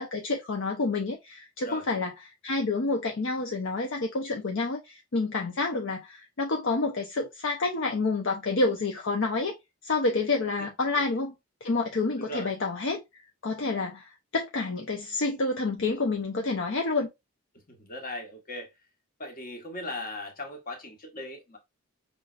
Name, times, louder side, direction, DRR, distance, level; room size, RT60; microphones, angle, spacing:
voice 1, 0.0-9.5 9.8-11.3 11.6-17.1, left 3 dB, 55° left, 0.6 m, -29 dB
voice 2, 12.2-12.5 17.7-18.7 19.2-21.6, left 1 dB, 40° left, 1.2 m, -38 dB
5.4 x 3.2 x 2.4 m
head